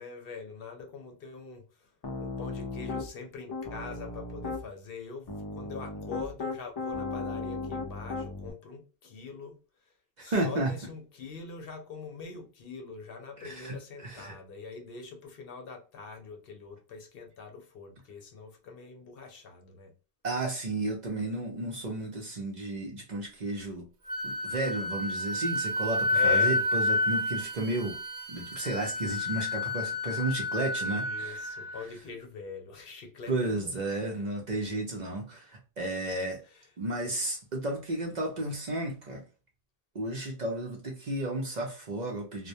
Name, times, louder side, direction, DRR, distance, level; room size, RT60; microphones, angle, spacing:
voice 1, 0.0-1.9 2.2-9.6 10.2-19.9 26.1-26.6 30.9-34.3 36.1-36.2 36.4-36.6, left 4 dB, 65° left, 0.7 m, -43 dB
Piano, 2.0-3.1 3.5-4.6 5.3-8.5, left 3 dB, 40° left, 0.3 m, -36 dB
voice 2, 10.2-10.7 13.4-14.4 20.2-23.9 24.2-28.0 28.3-31.8 33.3-36.4 36.8-39.2 39.9-42.5, right 2 dB, 50° right, 0.7 m, -33 dB
Wind instrument woodwind instrument, 24.1-31.8, left 2 dB, 75° right, 1.0 m, -30 dB
2.2 x 2.1 x 2.6 m
omnidirectional pair, 1.1 m